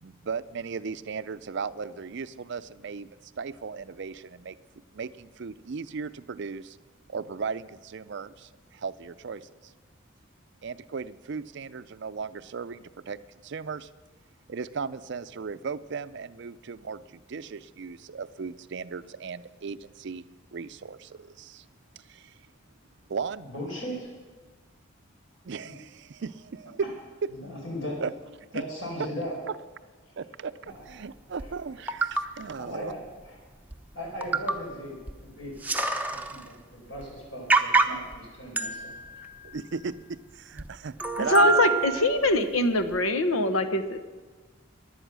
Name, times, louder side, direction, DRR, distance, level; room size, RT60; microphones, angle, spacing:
voice 1, 0.0-4.6 4.9-6.8 7.1-9.7 10.6-13.9 14.5-20.2 20.5-21.6 22.0-22.4 23.1-23.4 25.4-26.8 28.0-28.1 28.5-28.9 30.2-32.9 39.4-41.6, right 5 dB, 60° right, 14 dB, 0.5 m, -37 dB
voice 2, 23.4-24.1 25.6-25.7 27.3-28.0 28.5-29.4 30.6-30.8 32.6-33.4 33.9-35.6 35.9-38.9, equal, 65° left, -1 dB, 5.0 m, -38 dB
sound 1, 31.4-31.5 31.9-32.2 33.3-33.4 33.7-33.8 34.2-34.7 35.1-35.2 35.4-36.5 37.0-37.1 37.5-38.1 38.6-40.1 40.6-40.7 41.0-42.4 42.9-43.0, right 4 dB, 10° right, 0.7 m, -27 dB
voice 3, 41.3-44.0, left 2 dB, 85° left, 10 dB, 1.0 m, -23 dB
16.0 x 11.0 x 6.2 m, 1.4 s
head